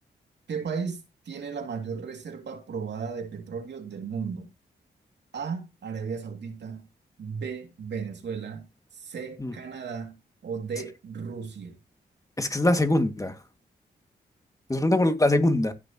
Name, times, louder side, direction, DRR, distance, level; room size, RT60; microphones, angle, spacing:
voice 1, 0.5-4.5 5.3-6.9 7.2-8.7 8.9-10.2 10.4-11.8, right 6 dB, 75° right, 2.8 m, -35 dB
voice 2, 12.4-13.3 14.7-15.7, left 1 dB, 20° left, 2.4 m, -22 dB
16.0 x 7.0 x 3.1 m
cardioid pair, 65°, 18 cm